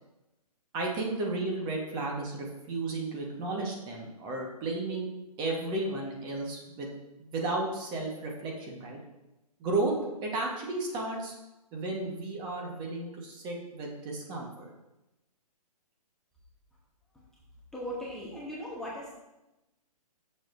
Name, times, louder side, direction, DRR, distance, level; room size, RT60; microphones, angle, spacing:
voice 1, 0.7-5.1 5.4-6.9 7.2-9.0 9.6-9.9 10.2-11.3 11.7-14.7, right 2 dB, 20° right, -1 dB, 1.3 m, -33 dB
voice 2, 17.7-19.1, equal, ahead, -6 dB, 1.0 m, -38 dB
9.9 x 6.7 x 2.6 m, 0.98 s
hypercardioid pair, 140°, 20 cm